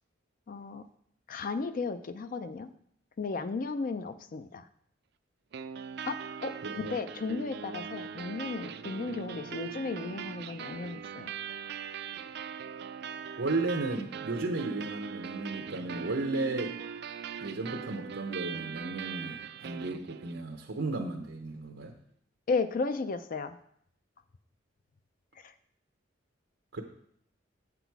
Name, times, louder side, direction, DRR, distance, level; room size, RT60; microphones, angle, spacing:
voice 1, 0.5-0.9 1.3-2.7 3.2-4.7 6.1-11.3 22.5-23.6 25.4-25.5, left 4 dB, 45° left, 10 dB, 0.4 m, -34 dB
sound 1, 5.5-20.5, right 7 dB, 60° right, 0.4 m, -41 dB
voice 2, 6.6-7.0 13.4-16.8 17.4-21.9 26.7-26.8, right 3 dB, 90° right, 0 dB, 0.9 m, -34 dB
8.1 x 6.0 x 4.6 m, 0.68 s
head